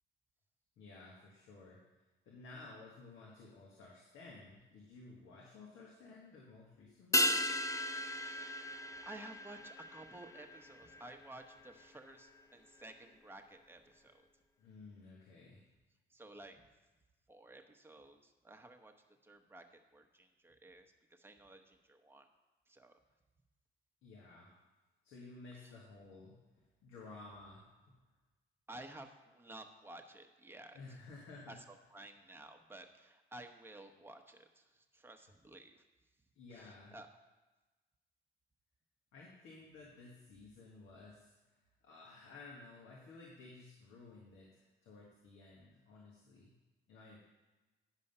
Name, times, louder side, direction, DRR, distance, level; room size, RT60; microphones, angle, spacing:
voice 1, 0.8-1.8 2.2-7.4 14.6-15.6 24.0-24.5 25.0-28.0 30.7-31.5 36.3-36.9 39.1-41.3 41.8-46.5 46.9-47.2, left 3 dB, 85° left, -3 dB, 1.6 m, -54 dB
sound 1, 7.1-11.9 12.1-12.2, left 1 dB, 15° left, 0.5 m, -36 dB
voice 2, 8.0-14.3 16.1-16.6 17.3-18.9 19.2-22.3 22.7-22.9 25.5-25.7 28.7-31.0 31.5-35.8 36.5-37.1, right 1 dB, 10° right, 4 dB, 1.0 m, -54 dB
9.9 x 5.4 x 5.5 m, 1.2 s
cardioid pair, 90°, 20 cm